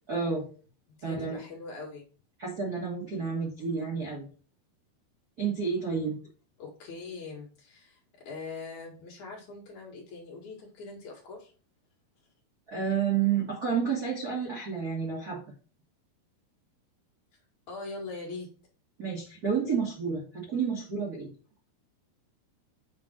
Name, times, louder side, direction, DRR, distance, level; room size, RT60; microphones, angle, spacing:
voice 1, 0.1-0.4 1.0-1.4 2.4-4.3 5.4-6.2 12.7-15.4 19.0-21.3, right 6 dB, 50° right, -4 dB, 1.2 m, -30 dB
voice 2, 0.9-2.1 3.1-3.3 6.6-8.0 8.3-11.5 17.7-18.5, left 3 dB, 55° left, -1 dB, 2.8 m, -42 dB
7.4 x 3.8 x 4.3 m, 0.40 s
omnidirectional pair, 4.4 m